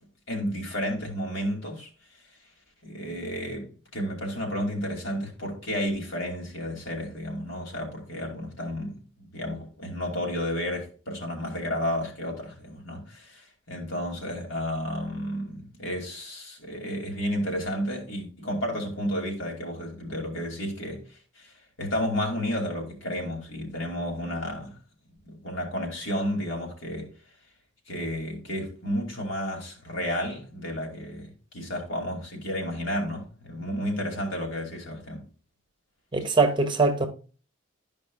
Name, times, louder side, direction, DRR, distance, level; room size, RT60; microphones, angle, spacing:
voice 1, 0.3-1.9 2.8-21.5 21.8-24.8 25.2-27.1 27.9-35.2, equal, 75° left, 2.5 m, -32 dB
voice 2, 36.1-37.1, right 3 dB, 25° right, 0.9 m, -22 dB
12.0 x 5.2 x 2.3 m
head